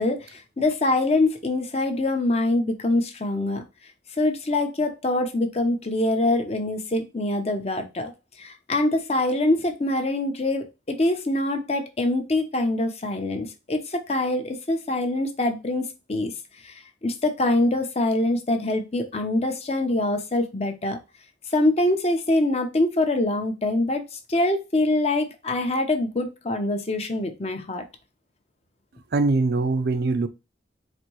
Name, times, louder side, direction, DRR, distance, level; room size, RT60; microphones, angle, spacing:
voice 1, 0.0-3.6 4.2-8.1 8.4-16.3 16.6-16.7 17.0-21.0 21.5-27.8, left 2 dB, 35° left, 0.7 m, -24 dB
voice 2, 29.1-30.3, right 3 dB, 60° right, 0.4 m, -22 dB
4.2 x 2.6 x 3.0 m
head